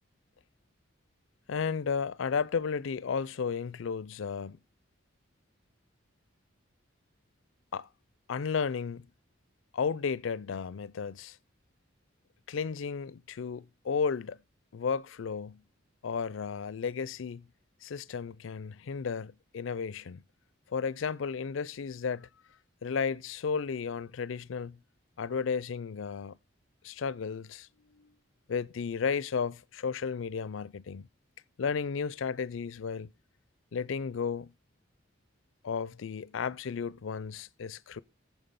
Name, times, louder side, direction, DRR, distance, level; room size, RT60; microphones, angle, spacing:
voice 1, 1.5-4.6 7.7-7.9 8.3-9.1 9.7-11.4 12.5-14.4 14.7-15.6 16.0-17.4 17.8-20.2 20.7-22.3 22.8-24.8 25.2-26.3 26.8-28.1 28.5-31.1 31.6-33.1 33.7-34.5 35.6-38.0, left 6 dB, 85° left, 0.4 m, -33 dB
9.1 x 7.2 x 4.1 m
head